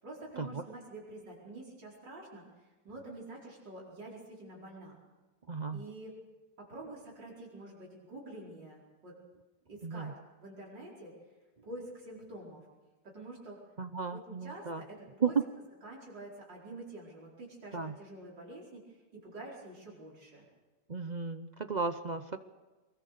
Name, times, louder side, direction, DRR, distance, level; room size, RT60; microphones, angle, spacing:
voice 1, 0.0-5.0 5.7-6.1 6.6-9.2 9.7-10.1 10.4-11.1 11.6-12.7 13.0-13.6 14.1-15.4 15.8-20.5, right 2 dB, 90° right, -4 dB, 5.3 m, -47 dB
voice 2, 5.5-5.8 9.8-10.1 13.8-14.8 15.2-15.4 17.7-17.9 20.9-22.4, right 5 dB, 60° right, 9 dB, 0.4 m, -34 dB
23.5 x 21.5 x 6.7 m, 1.2 s
omnidirectional pair, 1.9 m